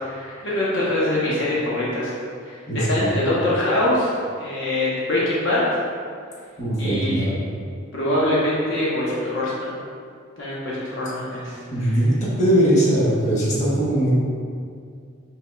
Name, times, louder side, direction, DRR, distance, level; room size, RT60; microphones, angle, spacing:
voice 1, 0.0-2.1 2.4-4.1 4.4-5.6 6.8-7.2 7.9-9.8 10.4-11.9, left 1 dB, 65° left, -7 dB, 0.9 m, -24 dB
voice 2, 2.7-3.2 6.6-7.4 11.3-11.4 11.7-14.1, right 1 dB, 35° left, -7 dB, 1.0 m, -20 dB
5.6 x 3.4 x 2.3 m, 2.2 s
head